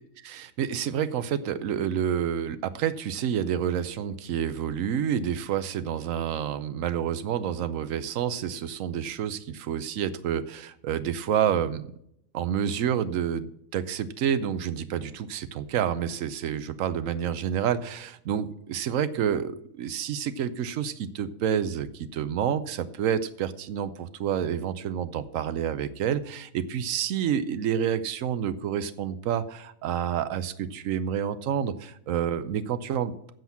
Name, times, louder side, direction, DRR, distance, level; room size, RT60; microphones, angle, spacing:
voice 1, 0.2-11.8 12.3-33.3, right 9 dB, 75° right, 13 dB, 1.1 m, -29 dB
7.9 x 7.6 x 7.1 m, 0.75 s
omnidirectional pair, 1.4 m